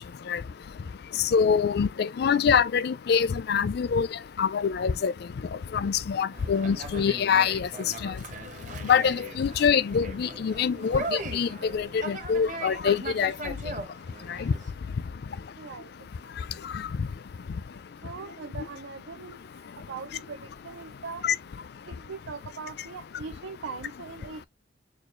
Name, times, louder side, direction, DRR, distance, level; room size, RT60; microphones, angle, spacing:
voice 1, 1.3-4.1 4.4-5.1 5.7-7.7 8.0-8.1 8.8-13.3 14.5-14.6 17.0-17.1 21.2-21.3, left 6 dB, 60° left, 0.4 m, -24 dB
Conversation, 6.3-14.7, right 2 dB, 45° right, 1.0 m, -39 dB
voice 2, 15.6-15.9 18.0-19.4 19.9-21.3 21.9-24.4, right 5 dB, 85° right, 0.5 m, -40 dB
6.5 x 2.3 x 3.1 m
head